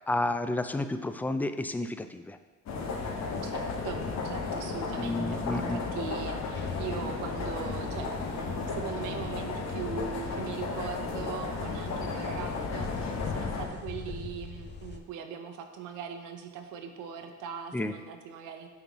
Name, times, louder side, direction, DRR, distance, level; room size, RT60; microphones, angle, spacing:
voice 1, 0.1-2.4 5.0-5.8 17.7-17.9, left 2 dB, 5° left, 10 dB, 0.3 m, -31 dB
sound 1, 2.7-13.7, left 4 dB, 60° left, 1.0 m, -34 dB
voice 2, 3.4-4.0 4.2-18.7, right 7 dB, 75° right, 6 dB, 0.8 m, -40 dB
sound 2, 6.5-15.0, left 5 dB, 35° left, 0.7 m, -42 dB
9.0 x 3.9 x 3.0 m, 1.3 s
supercardioid pair, 75°, 31 cm